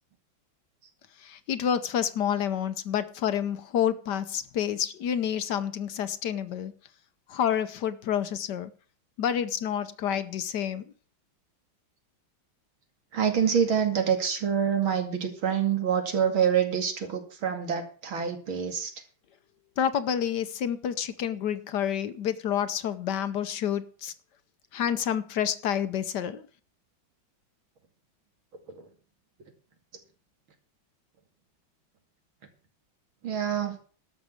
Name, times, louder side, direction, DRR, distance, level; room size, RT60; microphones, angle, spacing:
voice 1, 1.2-6.7 7.3-8.7 9.2-10.8 19.8-24.1 24.7-26.5, left 9 dB, 65° left, 1.3 m, -29 dB
voice 2, 13.1-18.9 33.2-33.8, right 8 dB, 85° right, 3.1 m, -26 dB
12.5 x 6.8 x 8.1 m
omnidirectional pair, 2.2 m